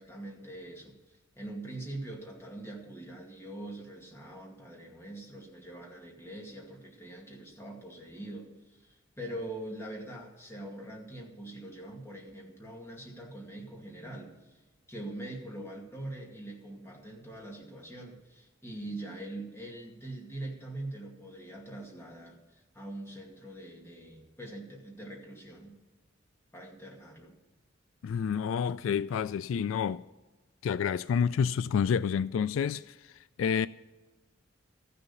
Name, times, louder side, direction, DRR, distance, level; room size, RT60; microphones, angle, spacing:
voice 1, 0.0-14.6 14.9-25.8 26.5-27.4, right 1 dB, 15° left, 2.2 m, -43 dB
voice 2, 28.0-30.0 30.6-32.8 33.4-33.7, left 7 dB, 80° left, 0.3 m, -28 dB
14.0 x 6.8 x 7.0 m
head